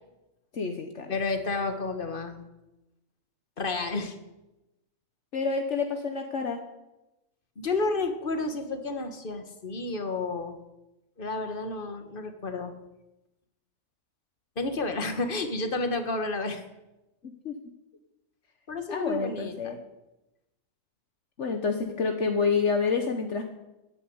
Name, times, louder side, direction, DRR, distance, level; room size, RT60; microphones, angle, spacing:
voice 1, 0.5-1.1 5.3-6.6 17.2-17.6 18.9-19.8 21.4-23.4, left 5 dB, 65° left, 5 dB, 1.5 m, -28 dB
voice 2, 1.1-2.5 3.6-4.2 7.6-10.6 11.2-12.7 14.6-16.6 18.7-19.8, left 3 dB, 40° left, 7 dB, 1.8 m, -31 dB
14.5 x 9.8 x 9.6 m, 0.98 s
omnidirectional pair, 1.3 m